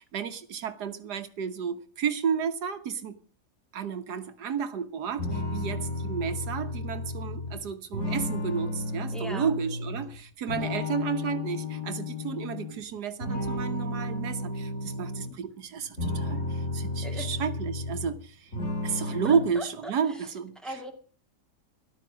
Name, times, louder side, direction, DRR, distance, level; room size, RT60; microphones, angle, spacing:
voice 1, 0.0-3.2 3.7-18.5 18.8-20.6, right 6 dB, 75° right, 1.6 m, -32 dB
sound 1, 5.2-10.1 10.5-12.8 13.2-15.3 15.8-18.2 18.5-19.5, left 2 dB, 45° left, 4.3 m, -33 dB
voice 2, 9.1-9.5 17.0-17.3 19.0-20.3 20.6-20.9, right 1 dB, ahead, 2.4 m, -40 dB
14.0 x 12.0 x 6.1 m
omnidirectional pair, 1.7 m